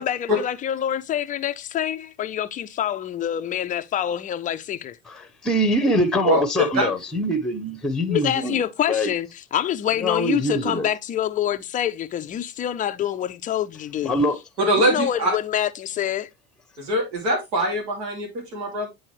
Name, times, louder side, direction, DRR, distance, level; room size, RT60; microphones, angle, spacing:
voice 1, 0.0-5.0 8.1-14.1 14.8-16.3, left 10 dB, 20° left, 0.3 m, -26 dB
voice 2, 5.1-8.6 8.9-9.1 10.0-10.9 14.0-14.4, equal, ahead, 0.7 m, -23 dB
voice 3, 14.6-15.3 16.8-18.9, right 1 dB, 85° right, 2.7 m, -23 dB
8.9 x 4.0 x 3.1 m
hypercardioid pair, 95°, 49 cm